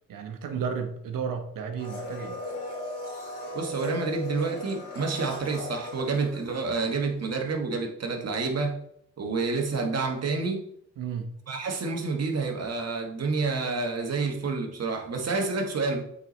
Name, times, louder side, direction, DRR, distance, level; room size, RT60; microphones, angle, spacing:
voice 1, 0.1-2.4 11.0-11.3, right 6 dB, 80° right, 1.0 m, -33 dB
Domestic sounds home sounds, 1.8-7.0 7.3-7.4, left 2 dB, 70° left, 2.5 m, -37 dB
voice 2, 3.5-8.8 9.2-10.6 11.5-16.0, right 4 dB, 50° right, 1.4 m, -29 dB
8.0 x 4.0 x 3.2 m
cardioid pair, 65°, 33 cm